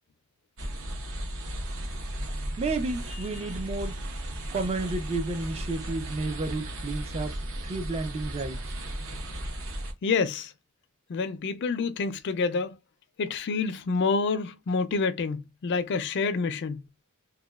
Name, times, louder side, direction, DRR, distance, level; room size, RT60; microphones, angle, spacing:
sound 1, 0.6-9.9, right 1 dB, 60° right, 0.7 m, -35 dB
voice 1, 2.6-3.9 4.5-7.4 7.6-8.7, right 3 dB, 25° right, 0.4 m, -31 dB
voice 2, 10.0-10.5 11.1-12.7 13.2-16.9, left 4 dB, 50° left, 0.3 m, -28 dB
3.0 x 2.2 x 2.3 m
head